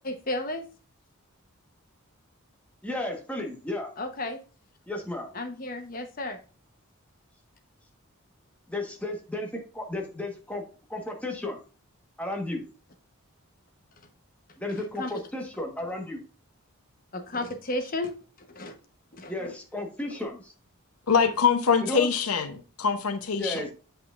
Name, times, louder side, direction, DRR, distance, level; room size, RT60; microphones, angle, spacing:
voice 1, 0.0-0.6 4.0-4.4 5.3-6.4 15.0-15.1 17.1-18.1 18.5-18.7 19.2-19.5, left 1 dB, 40° left, 1.0 m, -33 dB
voice 2, 2.8-3.9 4.9-5.3 8.7-9.5 9.7-10.6 10.9-11.6 12.2-12.6 14.6-16.2 19.3-20.5 21.8-22.1 23.4-23.7, left 1 dB, 5° left, 1.2 m, -33 dB
voice 3, 21.1-23.7, left 6 dB, 80° left, 0.8 m, -24 dB
7.9 x 5.6 x 2.5 m
head